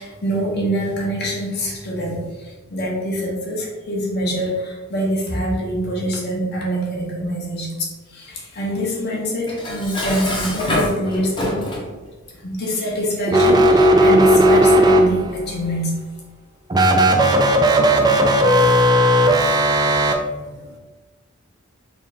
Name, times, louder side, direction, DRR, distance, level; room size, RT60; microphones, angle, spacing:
voice 1, 0.0-11.6 12.4-15.9, equal, 50° left, -3 dB, 1.1 m, -25 dB
Dishes pots and pans, 9.5-11.9, left 1 dB, 25° left, 0.8 m, -25 dB
sound 1, 13.3-15.4 16.7-20.1, right 1 dB, 20° right, 0.3 m, -15 dB
voice 2, 19.9-20.8, right 1 dB, 60° right, 2 dB, 0.6 m, -44 dB
3.6 x 2.4 x 4.1 m, 1.2 s
head